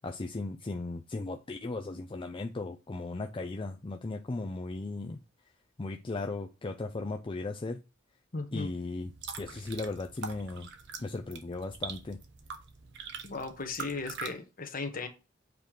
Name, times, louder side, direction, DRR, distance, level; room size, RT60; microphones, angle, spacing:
voice 1, 0.0-5.2 5.8-7.8 8.5-9.1 9.4-10.7 11.0-12.2, left 3 dB, 25° left, 0.4 m, -36 dB
voice 2, 8.3-8.7 13.2-15.1, left 3 dB, 45° left, 1.2 m, -36 dB
sound 1, 9.0-14.3, right 6 dB, 60° right, 1.0 m, -43 dB
7.9 x 3.1 x 5.1 m
head